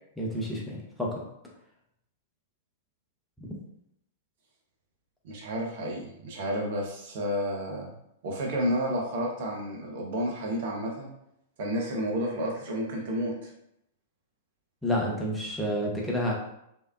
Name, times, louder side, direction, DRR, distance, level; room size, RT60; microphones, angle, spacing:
voice 1, 0.2-1.2 3.4-3.5 14.8-16.3, equal, ahead, -4 dB, 0.7 m, -29 dB
voice 2, 5.2-7.9 8.2-11.1 11.6-13.5, equal, 50° right, 0 dB, 0.7 m, -31 dB
3.3 x 2.8 x 2.3 m, 0.77 s
figure-of-eight pair, 100°, 0 cm